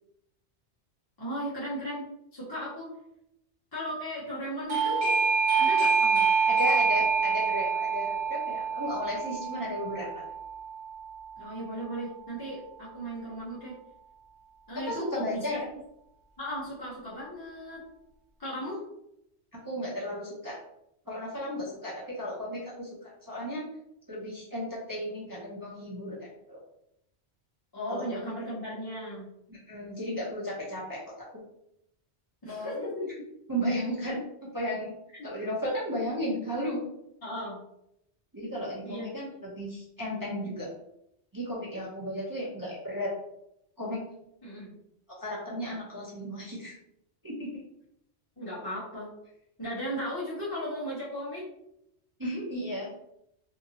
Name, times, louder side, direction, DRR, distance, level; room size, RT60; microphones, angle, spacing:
voice 1, 1.2-2.9 3.7-5.1 5.6-6.3 11.4-13.8 14.7-15.6 16.4-17.8 18.4-18.8 27.7-29.2 32.4-33.1 35.1-35.3 37.2-37.6 38.8-39.1 44.4-44.7 48.4-49.1 49.6-51.4, equal, 25° left, -9 dB, 0.7 m, -36 dB
Doorbell, 4.7-11.2, right 5 dB, 65° right, 1.3 m, -26 dB
voice 2, 6.6-10.2 14.9-15.7 19.6-20.6 21.1-23.6 24.1-26.6 27.9-28.0 29.5-31.0 32.4-32.8 33.5-34.9 35.2-36.8 38.3-40.7 41.3-43.1 43.8-44.0 45.2-46.7 47.2-47.6 52.2-52.9, equal, 25° right, -6 dB, 0.5 m, -34 dB
2.7 x 2.6 x 2.7 m, 0.79 s
omnidirectional pair, 1.2 m